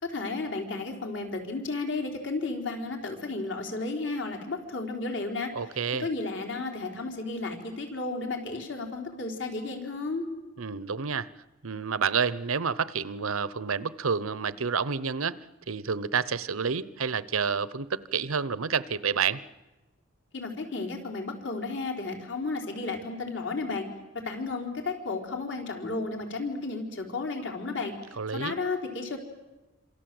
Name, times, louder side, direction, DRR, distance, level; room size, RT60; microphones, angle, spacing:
voice 1, 0.0-5.5 5.9-10.2 20.3-23.9 24.2-27.9 28.3-29.2, left 3 dB, 60° left, 2 dB, 4.4 m, -33 dB
voice 2, 5.6-6.1 10.6-11.3 11.6-15.4 15.7-19.4 28.2-28.6, right 6 dB, 90° right, 17 dB, 0.9 m, -29 dB
27.5 x 26.5 x 7.9 m, 1.1 s
head